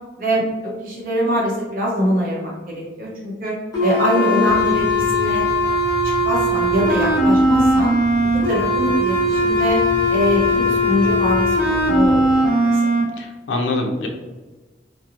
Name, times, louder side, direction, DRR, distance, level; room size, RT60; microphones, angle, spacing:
voice 1, 0.2-5.4 6.2-7.9 8.5-9.8 10.1-11.5 11.9-12.8, equal, 45° right, -4 dB, 0.7 m, -23 dB
sound 1, 3.7-13.0, equal, 20° left, 0.6 m, -19 dB
sound 2, 4.4-12.4, equal, 75° right, 0.4 m, -32 dB
voice 2, 13.2-14.1, left 2 dB, 75° left, 2 dB, 0.4 m, -24 dB
2.8 x 2.1 x 2.4 m, 1.2 s
head